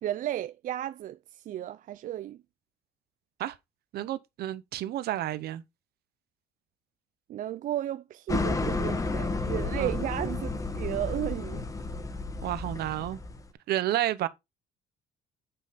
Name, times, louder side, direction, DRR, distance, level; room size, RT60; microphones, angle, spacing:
voice 1, 0.0-1.2 1.5-2.4 7.3-10.5 10.7-11.7, right 12 dB, 50° right, 0.4 m, -33 dB
voice 2, 3.9-5.6 9.8-10.0 12.4-13.2 13.7-14.3, right 13 dB, 70° right, 0.9 m, -30 dB
sound 1, 8.3-13.5, left 3 dB, 20° left, 1.1 m, -32 dB
8.9 x 5.1 x 4.1 m
cardioid pair, 110°, 17 cm